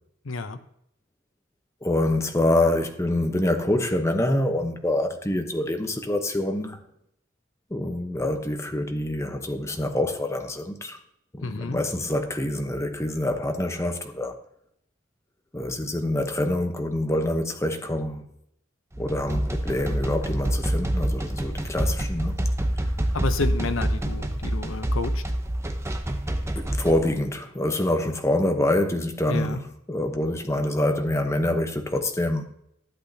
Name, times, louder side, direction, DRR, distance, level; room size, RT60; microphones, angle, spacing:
voice 1, 0.3-0.6 11.4-11.8 23.1-25.2 29.3-29.6, left 3 dB, 85° left, 0.8 m, -30 dB
voice 2, 1.8-6.8 7.7-11.0 11.3-14.3 15.5-18.3 19.0-22.3 22.8-22.9 26.6-32.5, left 1 dB, 15° left, 0.9 m, -26 dB
sound 1, 18.9-27.1, right 1 dB, 15° right, 0.8 m, -27 dB
12.0 x 8.2 x 2.8 m
head